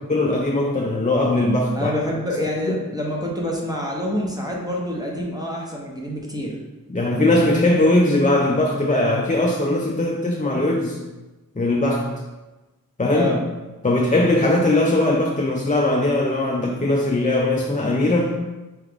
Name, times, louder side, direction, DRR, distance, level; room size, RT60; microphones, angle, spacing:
voice 1, 0.1-1.9 2.6-2.8 6.9-11.0 11.6-12.2 13.0-13.4 13.8-18.4, left 2 dB, 25° left, -1 dB, 0.4 m, -20 dB
voice 2, 1.7-6.6 13.1-13.4, left 1 dB, 10° right, -3 dB, 0.9 m, -26 dB
4.7 x 3.2 x 3.5 m, 1.1 s
wide cardioid pair, 60°, 34 cm